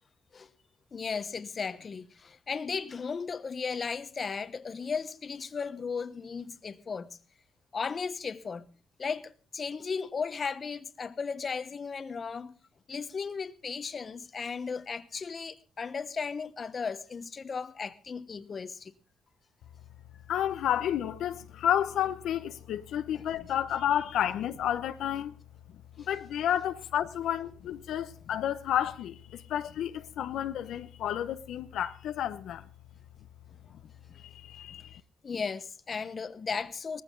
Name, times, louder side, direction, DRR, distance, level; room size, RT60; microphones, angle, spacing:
voice 1, 0.9-7.2 7.7-8.7 9.0-12.5 12.9-18.9 23.1-23.2 26.0-26.1 34.1-34.2 35.2-37.0, left 5 dB, 40° left, 1.1 m, -36 dB
voice 2, 20.3-25.3 26.0-32.6 34.2-35.0, left 10 dB, 75° left, 0.9 m, -31 dB
18.5 x 15.0 x 3.8 m
cardioid pair, 90°, 0 cm